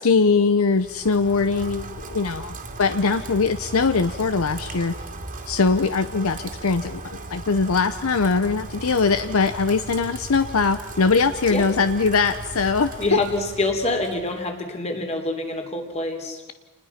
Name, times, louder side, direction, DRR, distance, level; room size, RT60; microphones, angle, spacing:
voice 1, 0.0-4.9 5.5-13.0, left 4 dB, 70° left, 11 dB, 0.8 m, -21 dB
Rain, 0.7-14.5, right 2 dB, 40° right, 2.5 m, -37 dB
voice 2, 13.0-16.4, left 2 dB, 30° left, 4 dB, 3.3 m, -26 dB
28.0 x 20.5 x 5.8 m, 1.2 s
head